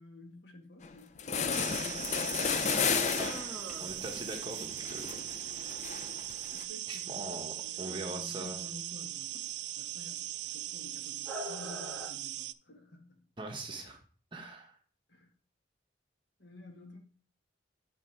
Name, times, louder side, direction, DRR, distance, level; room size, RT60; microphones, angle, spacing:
voice 1, 0.0-2.2 6.5-9.5 9.8-13.2 15.1-15.3 16.4-17.0, left 1 dB, 75° left, 1.6 m, -51 dB
sound 1, 0.8-0.9 1.2-6.6, left 6 dB, 40° left, 0.4 m, -33 dB
sound 2, 1.5-12.5, right 14 dB, 70° right, 0.3 m, -40 dB
sound 3, 3.1-12.1, right 1 dB, 5° left, 1.5 m, -48 dB
voice 2, 3.8-5.4 6.9-8.7 13.4-14.0 14.3-14.8, right 2 dB, 25° right, 1.3 m, -42 dB
10.5 x 3.6 x 4.6 m
head